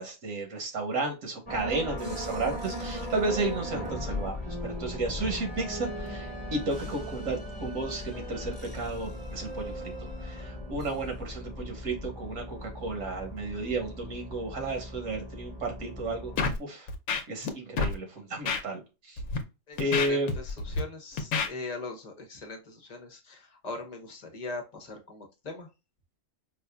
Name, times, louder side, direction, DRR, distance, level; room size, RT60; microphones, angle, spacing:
voice 1, 0.0-9.9 10.2-16.3 16.6-16.9 17.3-18.8 19.1-19.2 19.8-20.3, right 2 dB, 80° right, 2 dB, 1.6 m, -33 dB
sound 1, 1.5-16.4, left 1 dB, 5° left, 1.1 m, -38 dB
Scratching (performance technique), 16.4-16.6 16.9-17.5 17.8-17.9 18.5-18.6 19.2-19.4 19.8-20.8 21.2-21.5, left 4 dB, 90° left, 1.1 m, -28 dB
voice 2, 19.7-25.7, left 3 dB, 35° left, 3 dB, 0.8 m, -41 dB
4.8 x 2.5 x 2.2 m, 0.28 s
omnidirectional pair, 1.3 m